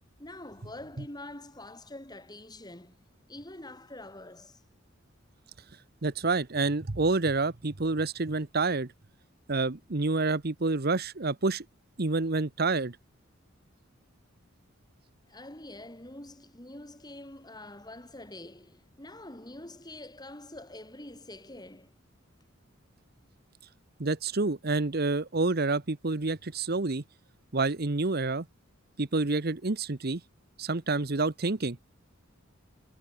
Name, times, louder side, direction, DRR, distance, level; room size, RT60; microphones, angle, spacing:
voice 1, 0.2-3.0 3.3-4.6 15.3-21.9, left 1 dB, 20° left, 4.5 m, -45 dB
voice 2, 6.0-8.9 9.5-11.6 12.0-13.0 24.0-27.0 27.5-28.5 29.0-30.2 30.6-31.8, right 3 dB, 50° right, 1.1 m, -28 dB
head